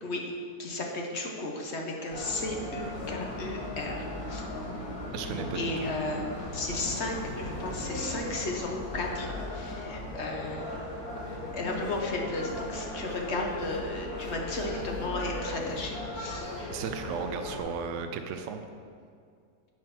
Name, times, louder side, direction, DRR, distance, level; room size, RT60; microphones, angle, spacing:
voice 1, 0.0-0.3 0.6-4.4 5.5-6.3 6.5-10.8 11.3-16.5, left 2 dB, 45° left, 1 dB, 1.2 m, -34 dB
sound 1, 2.1-17.6, left 1 dB, 65° left, 2.0 m, -37 dB
voice 2, 5.1-5.9 16.7-18.6, right 6 dB, 65° right, 7 dB, 0.8 m, -35 dB
11.0 x 4.6 x 5.8 m, 2.2 s
omnidirectional pair, 1.7 m